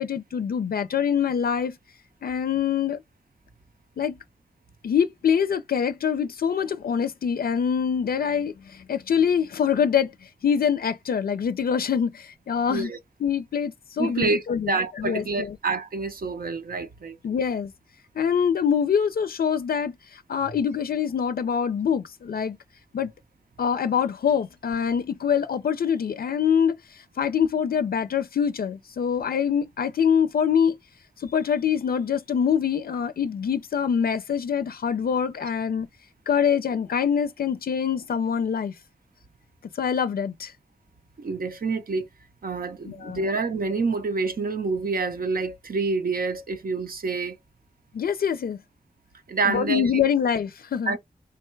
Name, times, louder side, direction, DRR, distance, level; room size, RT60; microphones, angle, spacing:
voice 1, 0.0-1.8 2.2-3.0 4.0-4.2 4.8-12.9 13.2-15.6 17.2-17.7 18.2-22.6 22.9-23.1 23.6-30.8 31.2-35.9 36.3-38.7 39.7-40.5 42.9-43.3 47.9-48.6 49.4-51.0, left 7 dB, 90° left, 0.4 m, -25 dB
voice 2, 14.0-17.2 41.2-42.1 42.4-47.4 49.3-50.0 50.9-51.0, right 4 dB, 75° right, 0.6 m, -27 dB
3.4 x 2.3 x 4.4 m
wide cardioid pair, 55°, 15 cm